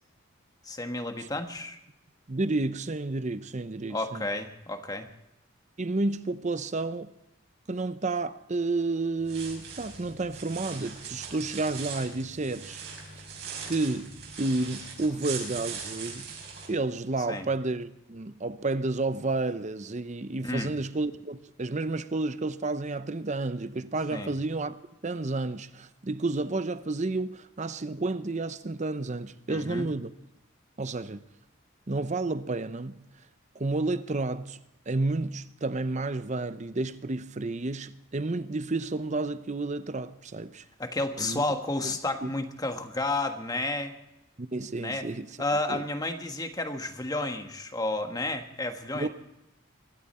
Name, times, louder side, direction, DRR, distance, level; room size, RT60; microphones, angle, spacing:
voice 1, 0.6-1.8 3.9-5.1 17.3-17.5 20.4-20.7 24.1-24.3 29.5-29.9 40.8-43.9 44.8-45.1 45.4-49.1, left 2 dB, 20° left, 1.3 m, -31 dB
voice 2, 2.3-4.2 5.8-7.1 7.7-12.8 13.6-16.3 16.7-24.8 25.0-30.1 30.8-31.2 31.9-33.0 33.5-34.6 34.9-40.6 41.2-41.4 41.8-41.9 42.2-42.3 44.4-45.4 45.7-45.8 48.9-49.1, right 2 dB, 35° right, 0.7 m, -31 dB
sound 1, 9.2-16.7, right 5 dB, 55° right, 6.4 m, -40 dB
25.0 x 12.5 x 4.3 m
head